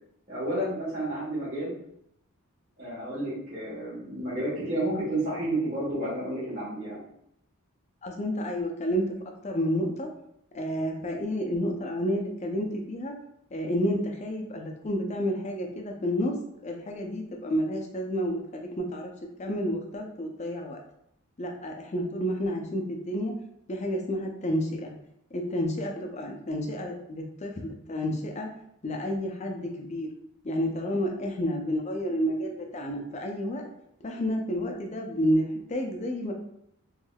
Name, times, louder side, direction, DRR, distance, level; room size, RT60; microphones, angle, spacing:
voice 1, 0.3-1.7 2.8-7.0, right 1 dB, 40° right, -12 dB, 1.2 m, -31 dB
voice 2, 8.0-9.0 9.4-10.1 10.5-13.1 13.5-16.3 16.6-19.1 19.4-20.8 21.4-23.3 23.7-24.9 25.3-28.5 28.8-30.1 30.4-33.6 34.0-36.3, equal, 30° left, 2 dB, 0.4 m, -30 dB
3.3 x 3.1 x 2.3 m, 0.75 s
head